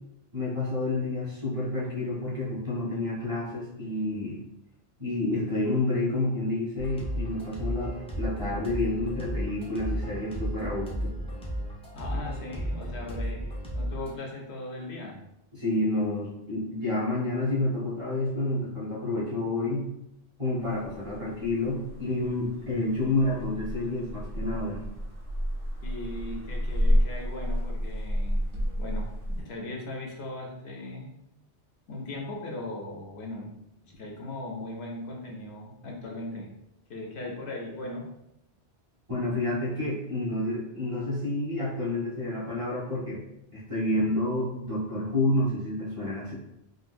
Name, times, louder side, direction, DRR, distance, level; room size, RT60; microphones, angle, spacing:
voice 1, 0.3-4.4 5.0-11.1 15.5-19.9 20.4-24.8 39.1-43.2 43.5-46.3, left 2 dB, 30° right, -7 dB, 1.1 m, -29 dB
sound 1, 6.8-14.2, equal, 10° left, 0.4 m, -34 dB
voice 2, 11.9-15.2 25.8-28.4 28.8-31.1 31.9-33.5 33.8-36.5 36.9-38.1, left 2 dB, 70° left, -1 dB, 0.9 m, -38 dB
sound 2, 20.6-29.4, equal, 60° right, 0.8 m, -30 dB
3.7 x 2.4 x 2.5 m, 0.84 s
omnidirectional pair, 1.2 m